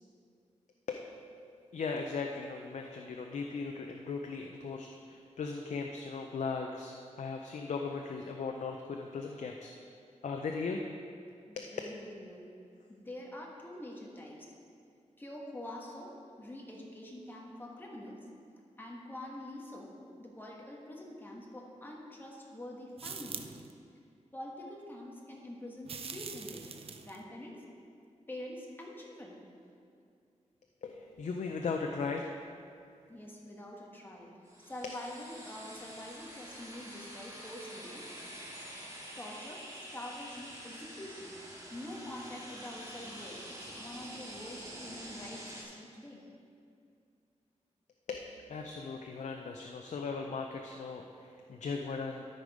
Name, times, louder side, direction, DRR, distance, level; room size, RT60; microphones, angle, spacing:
voice 1, 1.7-9.7 10.2-10.8 11.6-11.7 30.8-32.3 48.1-52.3, left 4 dB, 75° left, 3 dB, 0.5 m, -38 dB
voice 2, 11.5-12.5 12.9-14.5 15.2-18.2 18.8-19.9 20.2-23.5 24.3-27.6 28.3-29.4 33.1-34.3 34.6-38.1 39.1-41.4 41.7-46.2, left 1 dB, 15° left, -2 dB, 1.4 m, -46 dB
sound 1, 23.0-23.7 25.8-27.2, right 5 dB, 50° right, 0.5 m, -43 dB
sound 2, 34.4-45.6, equal, 25° right, 1.9 m, -47 dB
13.0 x 5.1 x 4.9 m, 2.4 s
wide cardioid pair, 145°, 12 cm